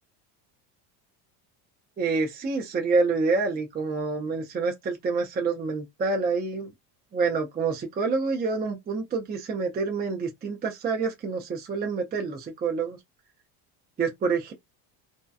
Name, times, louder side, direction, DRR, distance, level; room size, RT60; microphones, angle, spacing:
voice 1, 2.0-6.7 7.1-13.0 14.0-14.5, right 4 dB, 20° right, 0.5 m, -27 dB
2.7 x 2.1 x 2.3 m
supercardioid pair, 105°, 47 cm